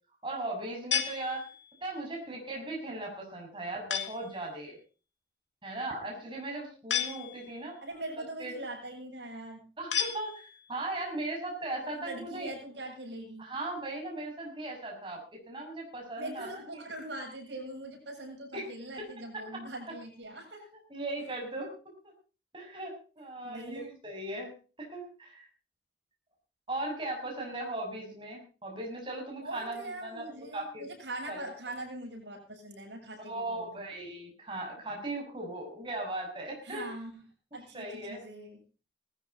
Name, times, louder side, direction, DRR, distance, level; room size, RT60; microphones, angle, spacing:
voice 1, 0.2-1.5 1.8-4.8 5.6-7.8 8.2-8.5 9.8-12.5 13.4-16.6 18.5-18.6 19.3-19.6 20.9-21.7 22.5-25.5 26.7-30.3 30.5-30.8 31.3-31.5 33.3-36.9 37.7-38.2, right 2 dB, 25° right, 0 dB, 6.6 m, -38 dB
sound 1, 0.9-1.8 3.9-4.4 6.9-7.7 9.9-10.8, left 9 dB, 75° left, 2.8 m, -33 dB
voice 2, 7.8-9.6 11.8-13.5 16.2-20.6 23.4-23.9 29.4-33.8 36.6-37.2 37.5-38.6, right 1 dB, 75° right, 2 dB, 7.9 m, -42 dB
19.0 x 14.5 x 4.1 m, 0.36 s
head